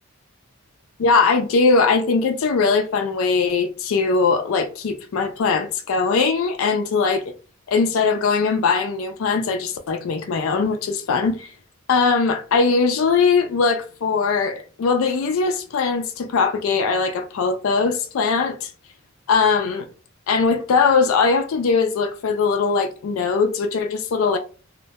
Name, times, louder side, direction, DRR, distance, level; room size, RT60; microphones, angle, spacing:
voice 1, 1.0-7.3 7.7-11.5 11.9-18.7 19.3-19.9 20.3-24.4, left 4 dB, 75° left, 0.4 m, -20 dB
2.2 x 2.0 x 2.8 m
head